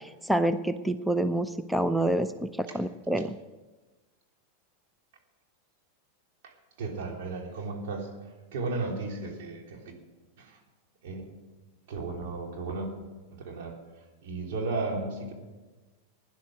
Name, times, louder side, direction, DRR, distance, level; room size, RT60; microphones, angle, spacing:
voice 1, 0.0-3.4, right 1 dB, 5° right, 10 dB, 0.6 m, -27 dB
voice 2, 6.8-8.1 8.5-9.9 10.4-10.6 11.0-11.2 11.9-12.9 13.3-15.3, right 3 dB, 65° right, 1 dB, 3.5 m, -34 dB
16.5 x 10.5 x 6.3 m, 1.2 s
hypercardioid pair, 105°, 0 cm